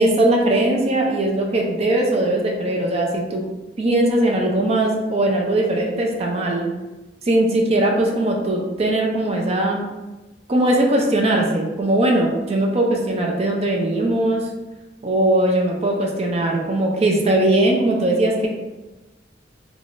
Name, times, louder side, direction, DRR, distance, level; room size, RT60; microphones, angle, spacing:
voice 1, 0.0-3.4 3.8-6.6 7.2-9.8 10.5-14.5 15.0-18.5, right 1 dB, 35° right, 0 dB, 0.4 m, -20 dB
3.3 x 2.3 x 2.5 m, 1.1 s
head